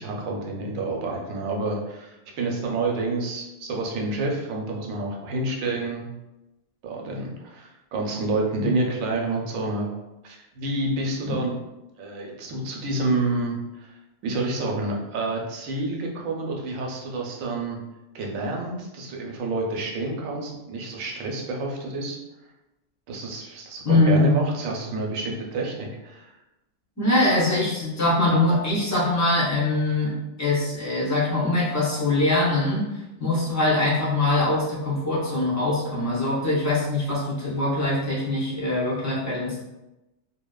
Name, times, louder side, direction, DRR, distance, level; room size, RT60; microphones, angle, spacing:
voice 1, 0.0-6.2 6.8-9.9 10.2-11.5 12.0-13.9 14.2-17.8 18.1-22.2 23.1-26.3, right 2 dB, 85° right, 0 dB, 1.0 m, -29 dB
voice 2, 23.8-24.3 27.0-32.9 33.2-39.6, left 2 dB, 25° left, -7 dB, 0.4 m, -23 dB
2.8 x 2.1 x 2.2 m, 0.99 s
omnidirectional pair, 1.4 m